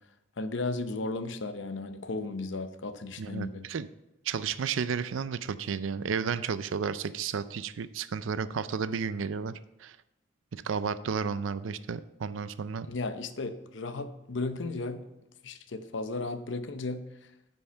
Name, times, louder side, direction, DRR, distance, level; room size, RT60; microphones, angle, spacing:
voice 1, 0.4-3.7 12.8-15.0 15.4-17.0, left 3 dB, 70° left, 10 dB, 0.7 m, -35 dB
voice 2, 3.2-3.9 4.2-10.0 10.5-12.9, right 6 dB, 90° right, 15 dB, 0.4 m, -32 dB
10.0 x 5.5 x 5.5 m, 0.90 s
head